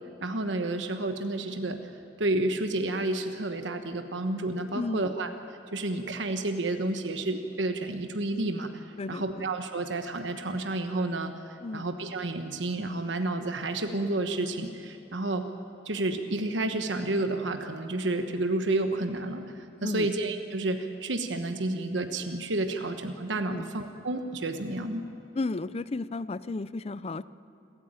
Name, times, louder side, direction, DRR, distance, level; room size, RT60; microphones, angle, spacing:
voice 1, 0.2-1.8 2.2-5.3 5.7-15.4 15.8-25.0, right 2 dB, 85° right, 6 dB, 1.2 m, -30 dB
voice 2, 4.7-5.1 9.0-9.5 11.6-11.8 19.8-20.1 23.5-23.7 25.3-27.2, left 3 dB, 35° left, 16 dB, 0.5 m, -33 dB
28.0 x 13.0 x 8.8 m, 2.9 s
head